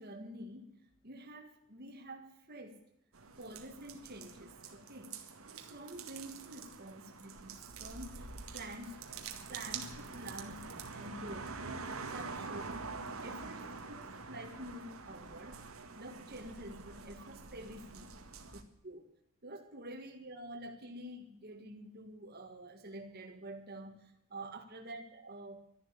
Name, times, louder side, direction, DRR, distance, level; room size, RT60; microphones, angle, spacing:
voice 1, 0.0-2.8 3.4-9.1 9.5-12.8 13.2-15.6 16.0-18.2 18.5-19.1 19.4-25.7, right 1 dB, 45° right, 2 dB, 1.8 m, -48 dB
sound 1, 3.1-18.6, right 4 dB, 85° right, 1.9 m, -46 dB
13.0 x 11.0 x 8.4 m, 0.76 s
head